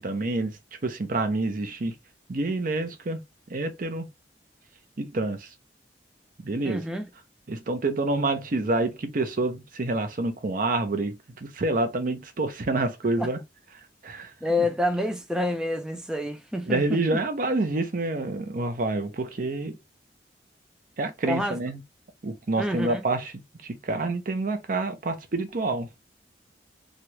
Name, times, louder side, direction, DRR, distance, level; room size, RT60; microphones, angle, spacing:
voice 1, 0.0-1.9 2.3-3.2 3.5-4.1 5.0-5.5 6.4-6.9 7.5-13.4 14.0-14.3 14.6-14.7 16.6-19.8 21.0-21.8 22.2-23.3 23.6-25.9, right 2 dB, 50° right, 0.6 m, -27 dB
voice 2, 6.6-7.0 13.2-13.3 14.4-17.0 21.3-21.6 22.6-23.0, left 1 dB, 5° right, 0.3 m, -28 dB
3.1 x 2.4 x 2.8 m
head